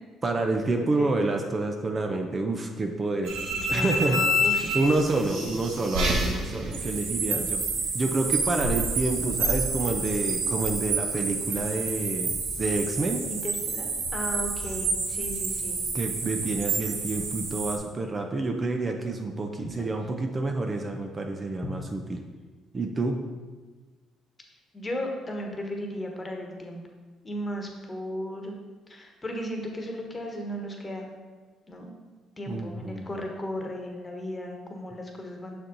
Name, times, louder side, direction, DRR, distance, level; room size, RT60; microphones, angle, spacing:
voice 1, 0.2-3.4 3.7-4.3 4.7-7.6 7.9-13.2 15.9-22.2 22.7-23.2 32.5-33.1, right 2 dB, 35° right, 4 dB, 0.6 m, -28 dB
voice 2, 0.8-1.2 3.5-4.8 5.3-5.7 6.7-6.8 13.3-15.8 21.6-21.7 24.7-26.8 27.2-28.5 28.9-31.1 31.7-31.9 32.4-35.6, equal, 25° left, 2 dB, 1.2 m, -35 dB
sound 1, 3.2-17.8, right 2 dB, 75° right, 1.0 m, -29 dB
6.2 x 4.3 x 3.9 m, 1.3 s
supercardioid pair, 70°, 0 cm